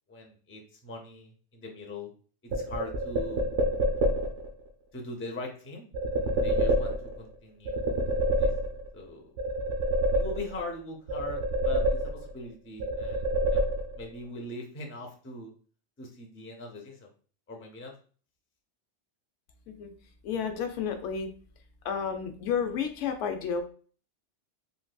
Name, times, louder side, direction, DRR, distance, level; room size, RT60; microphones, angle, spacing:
voice 1, 0.1-2.1 2.4-3.5 4.9-5.9 6.4-8.0 8.4-8.5 8.9-9.3 10.1-13.6 13.9-15.5 16.0-17.1 17.5-17.9, left 2 dB, 20° left, 1 dB, 0.3 m, -41 dB
sound 1, 2.5-4.5 5.9-7.3 7.7-9.0 9.4-10.7 11.1-12.5 12.8-14.2, right 1 dB, 85° right, 1.0 m, -27 dB
voice 2, 20.2-21.3 21.8-23.6, left 7 dB, 90° left, 6 dB, 0.9 m, -31 dB
3.8 x 2.5 x 2.2 m, 0.41 s
omnidirectional pair, 1.2 m